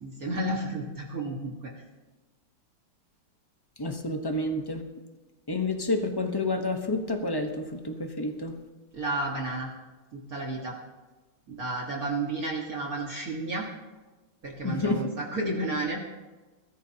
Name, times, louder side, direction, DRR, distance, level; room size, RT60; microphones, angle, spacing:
voice 1, 0.0-1.8 8.9-9.7 10.1-10.7 11.5-13.7 14.4-16.1, right 2 dB, 45° right, -2 dB, 2.1 m, -32 dB
voice 2, 3.8-4.8 5.5-8.6 14.6-15.1, left 2 dB, 20° left, 5 dB, 0.6 m, -29 dB
21.5 x 13.5 x 2.9 m, 1.2 s
omnidirectional pair, 2.3 m